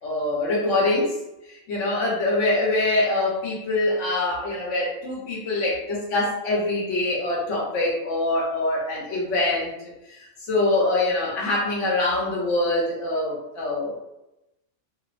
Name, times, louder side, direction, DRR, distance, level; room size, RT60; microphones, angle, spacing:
voice 1, 0.0-1.2 1.5-9.7 10.1-10.2 10.5-13.9, left 2 dB, 85° left, -4 dB, 1.2 m, -24 dB
2.9 x 2.0 x 2.5 m, 0.88 s
omnidirectional pair, 1.2 m